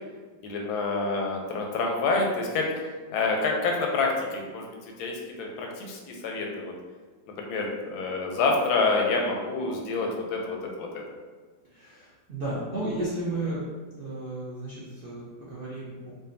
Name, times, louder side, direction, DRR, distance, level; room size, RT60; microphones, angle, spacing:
voice 1, 0.4-6.7 7.3-11.0, left 3 dB, 70° left, 0 dB, 1.0 m, -28 dB
voice 2, 11.7-13.6 14.0-16.1, right 2 dB, 55° right, -8 dB, 0.6 m, -33 dB
5.1 x 2.2 x 2.6 m, 1.4 s
omnidirectional pair, 2.0 m